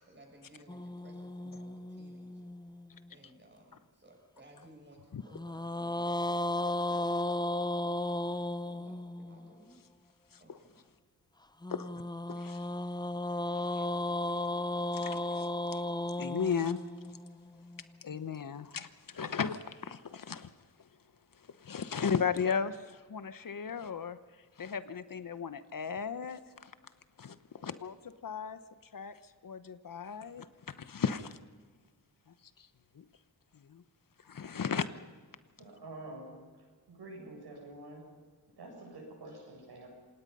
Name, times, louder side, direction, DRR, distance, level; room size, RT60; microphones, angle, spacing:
voice 1, 0.1-2.5 3.1-6.3 8.6-9.8 10.4-10.8, right 1 dB, 30° right, 0 dB, 7.0 m, -58 dB
sound 1, 0.7-3.1 5.3-9.5 11.6-17.8, left 1 dB, 10° left, 0.6 m, -35 dB
voice 2, 12.3-12.6 13.7-13.9 14.9-15.8 16.2-16.8 18.0-20.5 21.6-24.2 24.6-26.7 27.2-28.6 28.9-30.5 30.8-31.4 32.6-32.7 32.9-33.0 33.7-33.8 34.2-34.9, left 6 dB, 55° left, 13 dB, 1.0 m, -36 dB
voice 3, 35.6-36.4 36.9-38.0 38.6-39.9, right 2 dB, 85° right, 0 dB, 7.9 m, -47 dB
27.0 x 18.5 x 5.5 m, 1.5 s
wide cardioid pair, 100°, 39 cm